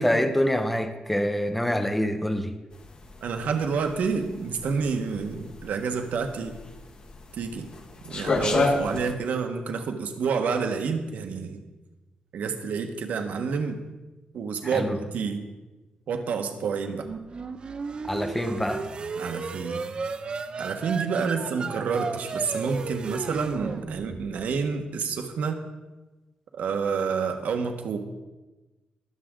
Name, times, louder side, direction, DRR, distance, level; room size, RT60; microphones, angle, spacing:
voice 1, 0.0-2.5 14.6-15.0 18.0-18.9, equal, 5° left, 0.7 m, -26 dB
sound 1, 2.7-9.1, left 3 dB, 35° left, 1.1 m, -29 dB
voice 2, 3.2-6.5 7.3-7.7 8.0-11.6 12.3-13.8 14.3-15.4 16.1-17.1 19.2-19.8 20.6-25.6 26.5-28.0, right 5 dB, 70° right, 1.4 m, -29 dB
sound 2, 17.0-24.7, right 4 dB, 35° right, 0.7 m, -34 dB
22.0 x 7.6 x 3.8 m
wide cardioid pair, 155°, 3 cm